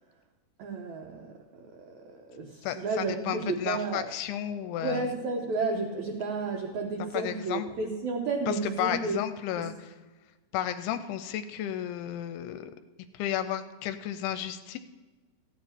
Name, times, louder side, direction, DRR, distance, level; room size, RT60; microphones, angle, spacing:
voice 1, 0.6-4.1 4.8-9.2 9.6-9.7, right 3 dB, 75° right, 1 dB, 1.7 m, -32 dB
voice 2, 2.6-5.1 7.1-7.7 8.5-9.9 10.5-12.7 13.1-14.8, left 11 dB, 85° left, 11 dB, 2.5 m, -33 dB
14.5 x 9.7 x 4.3 m, 1.3 s
omnidirectional pair, 4.7 m